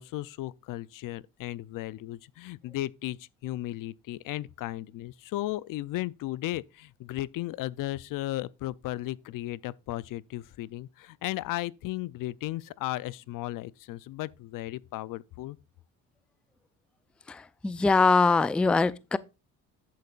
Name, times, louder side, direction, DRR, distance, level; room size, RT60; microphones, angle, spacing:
voice 1, 0.0-15.6, left 16 dB, 65° left, 0.5 m, -35 dB
voice 2, 17.3-19.2, left 4 dB, 5° left, 0.3 m, -23 dB
10.5 x 8.5 x 2.4 m
supercardioid pair, 85°, 35 cm